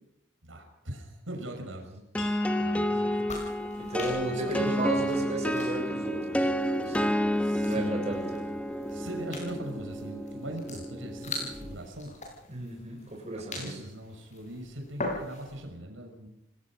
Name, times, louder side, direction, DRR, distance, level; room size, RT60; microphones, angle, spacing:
voice 1, 0.4-2.0 2.6-3.5 4.3-5.1 7.4-8.0 8.9-12.1 13.5-16.3, right 1 dB, 85° right, 3 dB, 6.0 m, -40 dB
sound 1, 2.1-11.7, equal, 5° left, 1.4 m, -30 dB
sound 2, 2.2-7.5, left 5 dB, 90° left, 7.2 m, -50 dB
sound 3, 3.2-15.7, left 2 dB, 40° left, 7.5 m, -43 dB
voice 2, 3.7-6.5 6.8-7.2 7.6-8.4 12.5-13.8, right 2 dB, 35° right, 1 dB, 7.1 m, -34 dB
28.5 x 19.5 x 6.2 m, 0.86 s
head